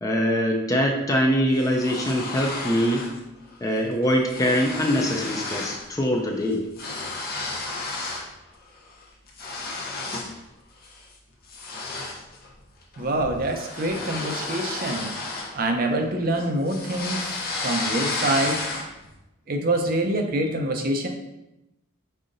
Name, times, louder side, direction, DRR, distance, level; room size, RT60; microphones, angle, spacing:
voice 1, 0.0-3.1 3.6-6.7, equal, 15° left, 1 dB, 0.4 m, -23 dB
sound 1, 1.5-3.2 3.5-3.8 4.0-5.9 6.1-8.3 8.7-10.4 10.8-11.1 11.5-16.0 16.4-19.1, left 3 dB, 45° left, 0.7 m, -32 dB
voice 2, 13.0-15.1 15.5-18.6 19.5-21.1, right 1 dB, 45° right, 3 dB, 0.5 m, -25 dB
5.5 x 3.7 x 2.5 m, 0.92 s
head